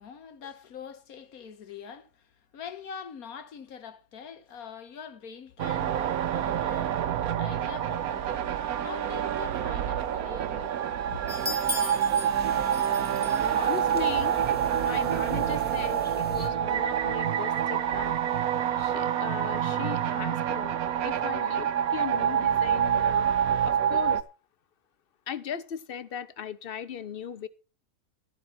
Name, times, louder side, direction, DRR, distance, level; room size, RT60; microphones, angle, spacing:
voice 1, 0.0-8.5 8.8-11.2, left 7 dB, 85° left, 1.6 m, -44 dB
sound 1, 5.6-24.2, right 9 dB, 85° right, 1.3 m, -27 dB
sound 2, 11.3-16.5, equal, 5° left, 2.7 m, -39 dB
voice 2, 13.5-14.4 14.8-18.2 18.8-23.3 23.6-24.2 25.3-27.5, left 8 dB, 45° left, 0.9 m, -38 dB
12.5 x 11.5 x 4.2 m
omnidirectional pair, 1.5 m